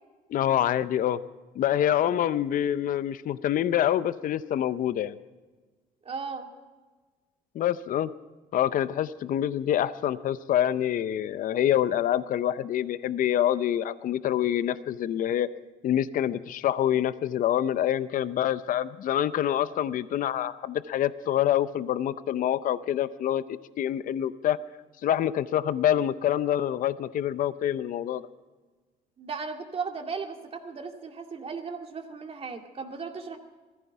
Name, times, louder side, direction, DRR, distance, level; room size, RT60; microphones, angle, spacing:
voice 1, 0.3-1.2 1.6-5.2 7.5-8.1 8.5-15.5 15.8-24.6 25.0-28.2, left 11 dB, 55° left, 14 dB, 0.6 m, -26 dB
voice 2, 6.0-6.5 29.2-33.4, right 5 dB, 35° right, 3 dB, 2.2 m, -36 dB
18.5 x 14.5 x 4.6 m, 1.3 s
cardioid pair, 110°, 17 cm